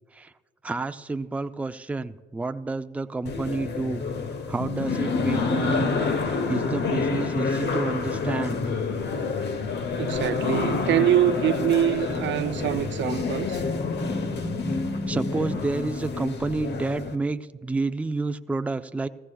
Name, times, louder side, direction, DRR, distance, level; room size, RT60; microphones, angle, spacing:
voice 1, 0.6-4.0 4.5-8.6 12.0-12.4 13.4-13.5 13.9-14.4 15.1-19.1, right 3 dB, 5° right, 0.4 m, -30 dB
sound 1, 3.3-17.2, left 4 dB, 60° left, 1.0 m, -28 dB
voice 2, 10.0-13.6, right 11 dB, 70° right, 0.5 m, -24 dB
sound 2, 10.1-15.6, left 1 dB, 25° left, 1.8 m, -36 dB
17.5 x 15.0 x 2.3 m
cardioid pair, 90°, 20 cm